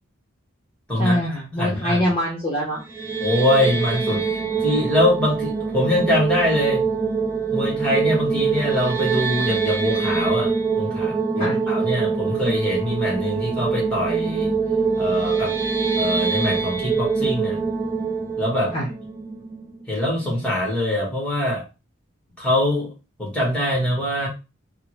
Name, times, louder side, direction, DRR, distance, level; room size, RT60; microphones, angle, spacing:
voice 1, 1.0-2.8 11.4-11.6 18.7-18.9, equal, 25° left, -4 dB, 0.8 m, -24 dB
voice 2, 1.6-2.0 3.2-6.8 7.5-14.5 15.0-15.5 16.0-17.6 18.4-18.7 19.9-21.6 22.4-22.9 23.2-24.3, left 1 dB, 5° left, -3 dB, 1.2 m, -23 dB
sound 1, 2.8-19.9, right 5 dB, 10° right, 0.5 m, -24 dB
3.5 x 2.1 x 2.9 m, 0.29 s
head